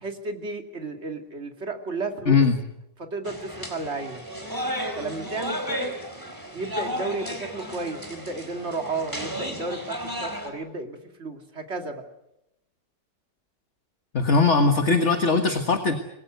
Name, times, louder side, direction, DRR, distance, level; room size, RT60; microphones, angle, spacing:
voice 1, 0.0-2.4 3.0-4.2 5.0-6.0 6.5-12.0, right 3 dB, 35° right, 4 dB, 2.9 m, -33 dB
voice 2, 2.3-2.6 14.1-15.9, left 4 dB, 40° left, 6 dB, 1.9 m, -20 dB
sound 1, 3.2-10.5, equal, 10° right, 4.3 m, -33 dB
26.5 x 21.0 x 8.1 m, 0.86 s
omnidirectional pair, 1.9 m